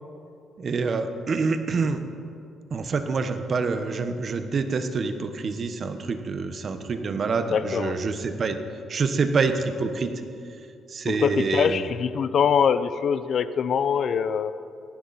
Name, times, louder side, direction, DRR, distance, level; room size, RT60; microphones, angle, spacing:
voice 1, 0.6-2.0 2.7-8.6 8.9-10.1 10.9-11.8, right 4 dB, 45° right, 8 dB, 1.3 m, -26 dB
voice 2, 7.5-8.0 11.1-14.5, left 7 dB, 60° left, 13 dB, 0.6 m, -23 dB
18.0 x 15.5 x 4.4 m, 2.5 s
cardioid pair, 90°, 0 cm